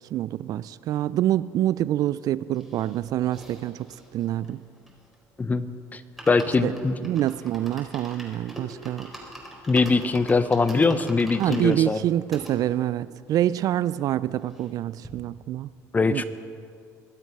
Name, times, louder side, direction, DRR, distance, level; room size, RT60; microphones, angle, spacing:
voice 1, 0.1-3.9 4.1-4.6 6.6-6.7 7.0-9.1 11.4-15.7 16.1-16.2, right 12 dB, 55° right, 0.4 m, -26 dB
sound 1, 2.5-5.3 5.7-5.8 6.0-12.5 13.1-13.2 13.4-13.5 13.8-14.8 15.0-15.2, right 1 dB, ahead, 4.3 m, -43 dB
voice 2, 6.3-6.9 9.7-12.0 15.9-16.2, left 4 dB, 20° left, 0.9 m, -22 dB
23.0 x 7.9 x 5.7 m
supercardioid pair, 85°, 7 cm